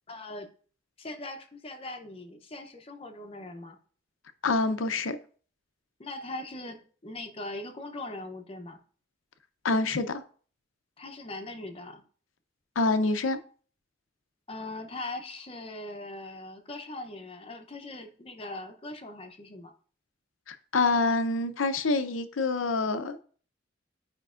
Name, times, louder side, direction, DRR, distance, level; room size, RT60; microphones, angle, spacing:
voice 1, 0.1-0.5 1.0-3.8 6.0-8.8 11.0-12.0 14.5-19.7, left 2 dB, 30° left, 0.7 m, -40 dB
voice 2, 4.4-5.2 9.6-10.2 12.8-13.4 20.5-23.2, left 3 dB, 90° left, 0.7 m, -26 dB
10.0 x 5.2 x 2.5 m
head